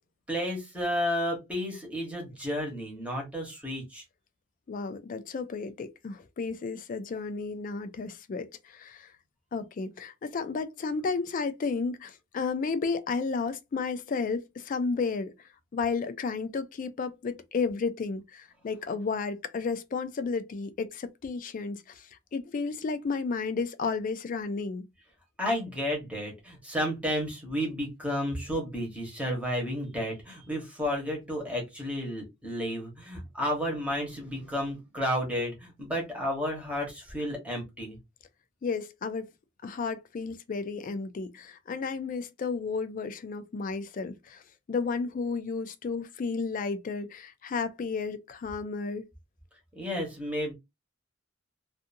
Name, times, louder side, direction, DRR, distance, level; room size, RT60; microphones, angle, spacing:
voice 1, 0.3-4.0 25.4-38.0 49.7-50.5, equal, 5° right, 1.0 m, -32 dB
voice 2, 4.7-9.1 9.5-24.9 38.6-39.3 39.6-44.4 44.7-49.0, left 4 dB, 40° left, 0.3 m, -32 dB
2.5 x 2.5 x 2.5 m
head